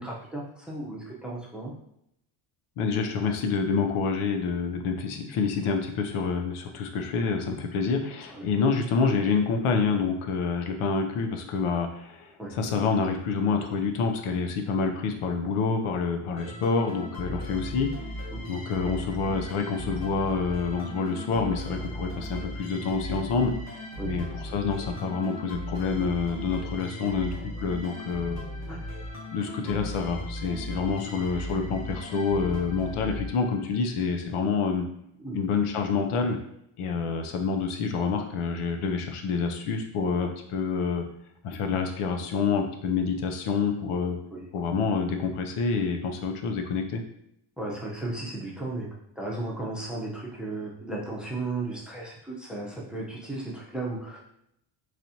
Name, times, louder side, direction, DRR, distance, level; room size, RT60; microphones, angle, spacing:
voice 1, 0.0-1.7 8.3-8.5 12.4-12.5 18.3-18.5 24.0-24.1 28.7-28.8 35.2-35.4 44.3-44.5 47.6-48.9 49.2-54.2, right 2 dB, ahead, -3 dB, 0.7 m, -35 dB
voice 2, 2.8-17.9 18.5-23.5 24.0-28.4 29.3-34.8 35.3-36.4 36.8-41.0 41.4-44.2 44.5-47.0, left 5 dB, 80° left, 5 dB, 0.7 m, -27 dB
sound 1, 16.4-33.9, left 1 dB, 30° left, 1.5 m, -37 dB
4.1 x 3.2 x 2.8 m, 0.76 s
cardioid pair, 140°, 50 cm